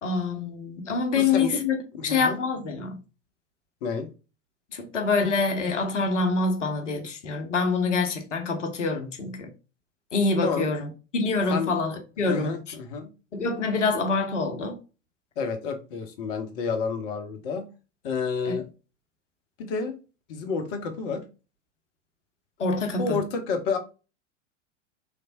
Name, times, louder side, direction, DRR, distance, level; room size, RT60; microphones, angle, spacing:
voice 1, 0.0-3.0 4.7-9.5 10.1-12.7 13.3-14.8 18.5-18.6 22.6-23.2, left 4 dB, 75° left, 0.8 m, -26 dB
voice 2, 1.1-1.5 2.1-2.4 3.8-4.1 10.4-10.7 11.5-11.7 12.2-13.1 15.4-17.6 18.0-18.7 19.6-19.9 20.3-21.2 23.0-23.8, left 5 dB, 45° left, 0.9 m, -29 dB
3.3 x 3.2 x 2.6 m
figure-of-eight pair, 85°, 37 cm